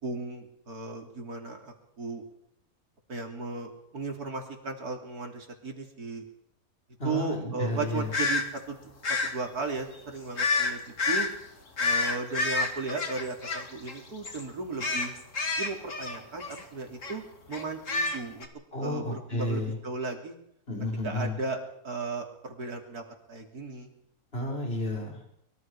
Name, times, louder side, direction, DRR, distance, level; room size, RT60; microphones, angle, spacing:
voice 1, 0.0-2.2 3.1-6.2 7.0-8.8 9.1-10.8 11.1-11.3 11.8-15.1 15.6-17.2 17.5-18.5 18.8-20.4 21.0-23.9, right 3 dB, 85° right, 2 dB, 3.8 m, -36 dB
voice 2, 7.0-8.1 18.7-19.8 20.7-21.4 24.3-25.2, left 1 dB, 40° left, -1 dB, 5.5 m, -31 dB
sound 1, 8.1-8.4 9.0-9.3 10.4-10.7 11.0-11.3 11.8-14.0 14.2-14.4 14.8-16.6 17.0-17.2 17.5-18.5, left 3 dB, 55° left, 2.7 m, -28 dB
24.5 x 22.5 x 4.9 m, 0.75 s
omnidirectional pair, 1.6 m